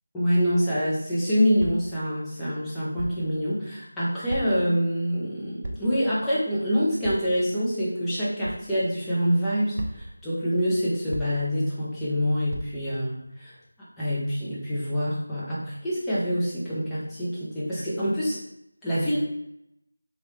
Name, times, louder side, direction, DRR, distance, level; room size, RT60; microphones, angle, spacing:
voice 1, 0.1-13.5 14.0-18.4 18.8-19.2, equal, 5° left, -11 dB, 0.5 m, -26 dB
sound 1, 1.6-2.0 3.0-3.2 4.3-4.7 5.6-6.0 7.0-7.2 8.4-8.6 9.8-10.2 11.1-11.5 12.5-12.7, right 1 dB, 45° right, 0.4 m, -34 dB
2.9 x 2.2 x 3.1 m, 0.80 s
figure-of-eight pair, 170°, 0 cm